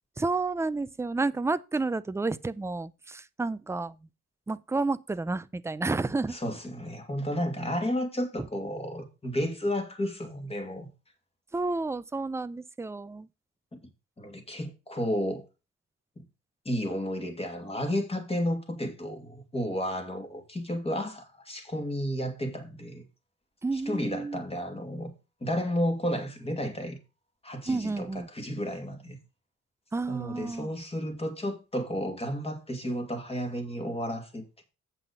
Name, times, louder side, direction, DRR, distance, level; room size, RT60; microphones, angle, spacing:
voice 1, 0.2-3.9 4.5-6.4 11.5-13.3 23.6-24.4 27.7-28.3 29.9-30.7, right 3 dB, 10° right, 0.5 m, -30 dB
voice 2, 6.3-10.9 13.7-13.8 14.2-15.4 16.2-16.3 16.6-23.0 23.7-25.1 25.4-27.0 27.4-29.2 30.1-34.6, equal, 20° left, 2.5 m, -32 dB
8.3 x 6.0 x 5.3 m
cardioid pair, 90°, 30 cm